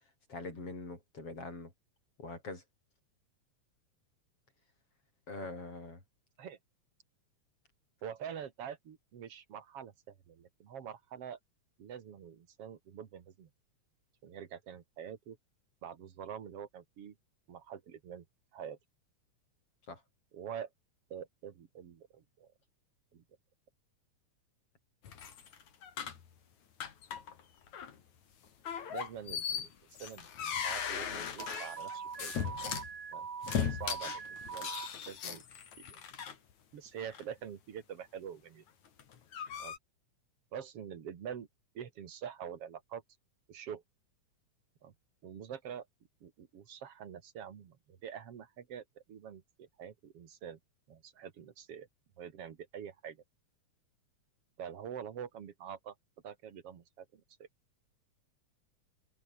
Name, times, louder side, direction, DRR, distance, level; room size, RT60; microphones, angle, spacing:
voice 1, 0.3-1.7 2.2-2.6 5.3-6.0 19.9-20.0, left 3 dB, 45° left, 8.3 m, -43 dB
voice 2, 8.0-11.4 11.8-13.5 14.2-15.4 15.8-17.1 17.5-18.2 18.5-18.8 20.3-20.7 21.1-22.5 23.1-23.2 28.9-29.7 30.0-32.6 33.1-33.3 33.6-34.7 35.1-35.4 35.9-36.0 36.7-38.6 39.6-39.8 40.5-41.5 41.7-43.0 43.5-43.8 44.8-44.9 45.2-45.9 46.2-50.6 50.9-51.9 52.2-53.2 54.6-55.9 56.2-57.5, right 8 dB, 50° right, 2.7 m, -45 dB
sound 1, 25.0-26.3 26.8-27.4 27.7-27.9 28.7-32.9 33.4-36.3 37.0-37.2 38.9-39.8, left 8 dB, 65° left, 3.9 m, -38 dB
Alarm, 31.4-34.9, right 6 dB, 80° right, 5.2 m, -43 dB
omnidirectional pair, 3.5 m